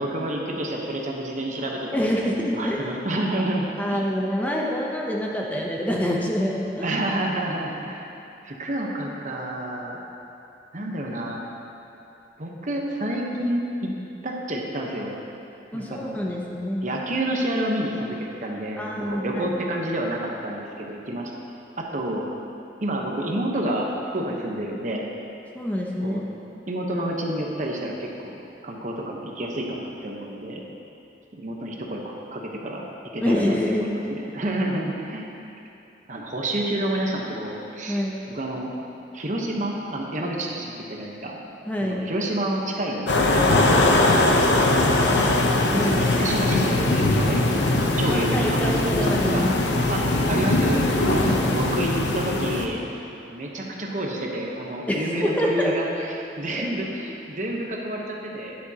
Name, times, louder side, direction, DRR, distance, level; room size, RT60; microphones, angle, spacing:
voice 1, 0.0-4.0 6.8-8.1 8.4-10.0 10.7-11.4 12.4-13.9 14.2-15.1 15.7-16.2 16.8-21.3 21.8-22.3 22.8-25.0 26.0-26.2 26.7-30.6 31.3-35.3 36.1-38.0 38.3-38.7 39.1-41.4 41.8-43.9 44.2-45.3 45.8-49.6 49.9-52.8 53.3-58.6, right 1 dB, 45° right, 0 dB, 1.0 m, -29 dB
voice 2, 1.9-2.8 3.8-6.9 15.7-16.9 18.8-19.6 25.5-26.2 33.2-33.9 34.2-34.3 37.9-38.2 41.7-42.1 45.7-46.2 48.1-49.5 51.2-51.6 54.9-55.0 55.2-55.7 56.5-56.6, equal, 10° left, -2 dB, 0.7 m, -26 dB
sound 1, 43.1-52.7, left 2 dB, 75° left, 0.8 m, -21 dB
11.5 x 9.7 x 2.9 m, 2.8 s
head